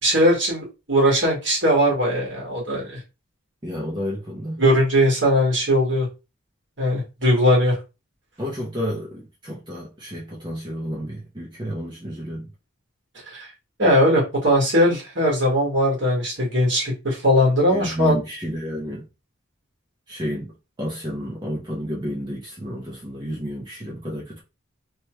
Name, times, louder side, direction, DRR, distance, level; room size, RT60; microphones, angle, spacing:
voice 1, 0.0-3.0 4.6-6.1 6.8-7.7 13.3-13.5 13.8-18.2, equal, 60° right, 1.5 m, -19 dB
voice 2, 3.6-4.6 8.4-12.5 17.7-19.1 20.1-20.5 20.8-24.4, equal, 20° right, 0.7 m, -30 dB
3.1 x 2.2 x 3.0 m
head